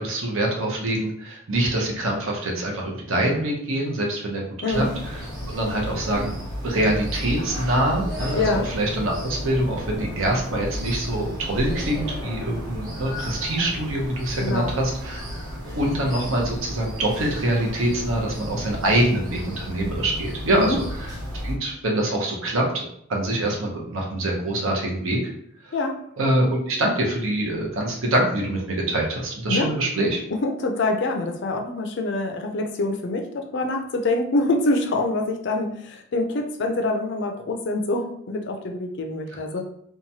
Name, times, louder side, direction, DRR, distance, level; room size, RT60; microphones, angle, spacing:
voice 1, 0.0-6.4 6.6-21.1 21.4-25.3 25.6-25.7 26.2-30.2, right 1 dB, 70° right, -1 dB, 0.7 m, -25 dB
sound 1, 4.7-21.5, equal, 20° right, 0.8 m, -33 dB
voice 2, 8.3-8.7 14.3-14.7 20.6-20.8 25.7-26.0 29.5-29.7 30.3-39.6, left 2 dB, 55° left, 3 dB, 0.4 m, -25 dB
2.9 x 2.2 x 2.7 m, 0.69 s
head